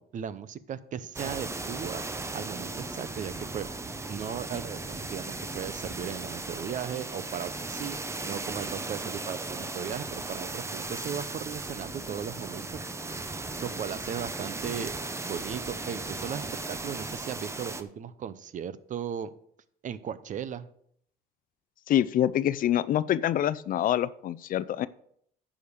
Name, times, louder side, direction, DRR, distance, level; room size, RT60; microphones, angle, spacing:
voice 1, 0.0-2.0 2.3-3.7 4.1-8.0 8.2-12.8 13.6-14.9 15.3-19.3 19.8-20.7, right 8 dB, 50° right, 15 dB, 0.7 m, -37 dB
sound 1, 1.1-17.8, right 3 dB, 15° right, 0.8 m, -37 dB
voice 2, 21.9-24.9, left 11 dB, 55° left, 17 dB, 0.5 m, -26 dB
10.5 x 5.1 x 6.6 m, 0.67 s
cardioid pair, 110°, 17 cm